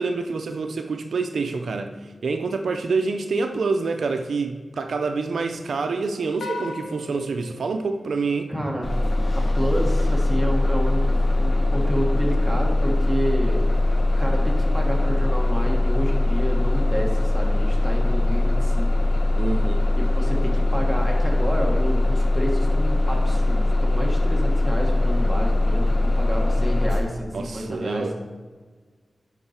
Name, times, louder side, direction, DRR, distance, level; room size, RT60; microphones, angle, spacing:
voice 1, 0.0-1.9 2.2-8.5 19.4-19.9 27.3-28.1, right 4 dB, 85° right, 6 dB, 0.5 m, -27 dB
sound 1, 6.4-8.9, left 3 dB, 85° left, 0.8 m, -38 dB
voice 2, 8.5-8.9 9.3-13.6 14.2-18.9 19.9-28.0, equal, ahead, -1 dB, 1.4 m, -29 dB
Bus, 8.8-27.0, left 2 dB, 40° left, 1.0 m, -21 dB
10.0 x 3.9 x 4.3 m, 1.4 s
wide cardioid pair, 95°, 0 cm